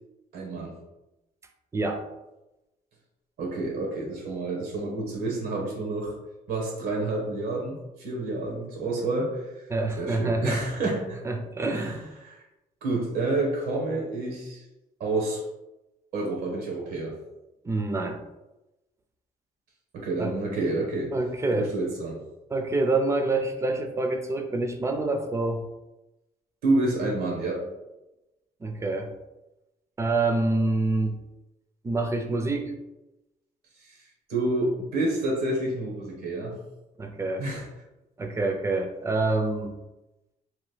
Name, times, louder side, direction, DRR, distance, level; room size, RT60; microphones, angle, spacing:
voice 1, 0.3-0.7 3.4-6.1 6.5-9.4 10.0-11.2 11.7-11.9 12.2-12.4 12.8-14.6 15.0-15.4 16.1-17.1 19.9-21.1 21.5-22.2 26.6-27.7 33.8-34.0 34.3-36.5 37.4-37.7, right 2 dB, 90° right, -1 dB, 0.9 m, -29 dB
voice 2, 1.7-2.0 9.7-10.9 11.2-12.0 17.6-18.2 20.2-20.3 21.1-21.7 22.5-25.6 28.6-29.1 30.0-31.2 31.8-32.8 37.0-37.4 38.2-39.8, right 2 dB, 20° right, 5 dB, 0.3 m, -27 dB
2.9 x 2.2 x 3.2 m, 0.98 s
cardioid pair, 130°, 15 cm